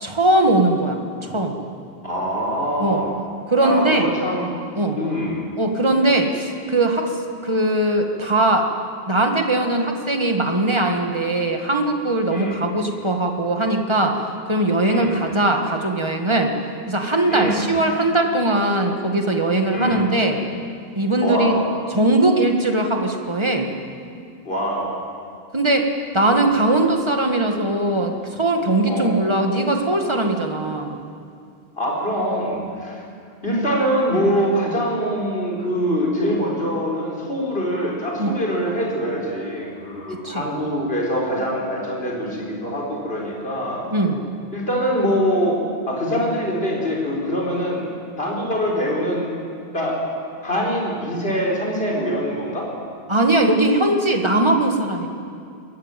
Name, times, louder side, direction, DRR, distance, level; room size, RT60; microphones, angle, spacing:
voice 1, 0.0-1.6 2.8-3.0 3.5-4.1 4.8-5.0 5.6-7.2 7.4-8.7 9.1-16.5 16.9-20.4 21.0-21.5 21.9-23.7 25.5-25.9 26.1-31.0 38.2-38.4 40.2-40.5 43.9-44.2 53.1-55.1, right 2 dB, 25° right, 3 dB, 1.9 m, -20 dB
voice 2, 2.0-3.1 3.6-4.5 4.9-5.4 12.3-12.6 14.8-15.2 17.3-17.6 19.7-20.0 21.2-21.7 24.4-24.9 28.9-29.2 31.8-33.0 33.4-43.8 44.5-45.6 45.9-47.8 48.2-49.3 49.7-50.0 50.4-52.7, equal, 70° left, -3 dB, 4.9 m, -24 dB
22.5 x 14.5 x 9.2 m, 2.4 s
omnidirectional pair, 1.0 m